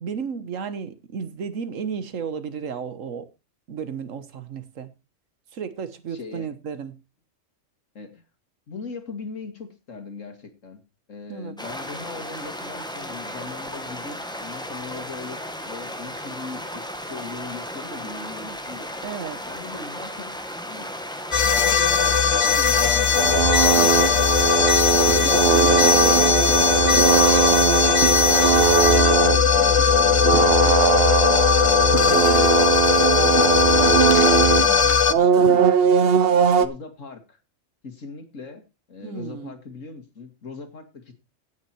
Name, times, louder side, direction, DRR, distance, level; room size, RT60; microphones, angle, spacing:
voice 1, 0.0-3.3 3.7-4.9 5.5-7.0 11.3-11.6 19.0-19.4 23.8-24.2 25.2-26.6 27.1-31.1 32.0-32.5 32.9-34.1 34.7-35.5 39.0-39.5, right 6 dB, 90° right, 1.5 m, -34 dB
voice 2, 6.1-6.5 7.9-8.2 8.7-10.8 11.1-18.9 19.5-20.4 20.7-20.9 21.4-23.4 23.7-24.3 25.7-26.6 30.4-30.6 33.7-34.8 36.6-37.4 37.8-38.6 38.9-41.1, left 4 dB, 80° left, 2.4 m, -39 dB
sound 1, 11.6-28.8, equal, 5° left, 1.4 m, -35 dB
sound 2, 21.3-35.1, left 6 dB, 45° left, 0.4 m, -18 dB
sound 3, 23.1-34.7 35.1-36.7, right 8 dB, 55° right, 0.9 m, -20 dB
16.5 x 6.5 x 4.4 m
omnidirectional pair, 1.3 m